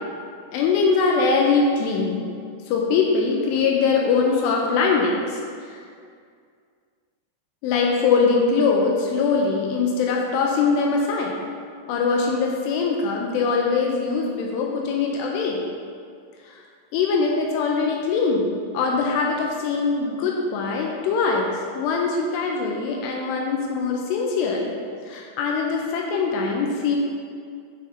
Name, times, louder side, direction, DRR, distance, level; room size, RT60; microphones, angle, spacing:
voice 1, 0.5-2.2 2.7-5.4 7.6-11.4 11.9-15.7 16.4-16.6 16.9-21.5 21.8-24.8 25.1-27.0, left 4 dB, 85° left, -1 dB, 2.6 m, -22 dB
8.6 x 6.2 x 2.7 m, 2.2 s
omnidirectional pair, 5.2 m